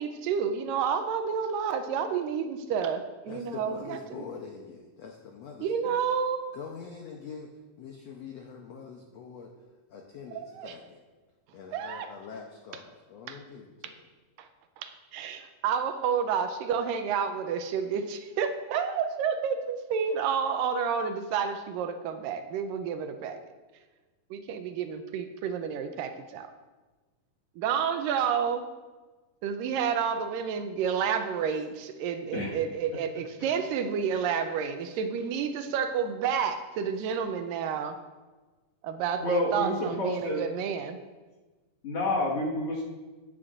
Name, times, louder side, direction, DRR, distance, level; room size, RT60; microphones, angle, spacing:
voice 1, 0.0-4.0 5.6-6.4 10.5-10.7 11.7-12.1 13.3-13.4 14.4-14.5 14.8-23.4 24.3-26.5 27.6-28.7 29.4-38.0 38.8-41.0, right 7 dB, 80° right, 7 dB, 2.3 m, -30 dB
voice 2, 3.3-6.0 6.5-7.5 7.8-9.5 9.9-11.0 11.5-14.0, left 6 dB, 80° left, 1 dB, 1.5 m, -44 dB
voice 3, 39.2-40.4 41.8-42.8, left 1 dB, 50° left, -4 dB, 2.3 m, -29 dB
14.5 x 9.6 x 2.5 m, 1.3 s
omnidirectional pair, 4.0 m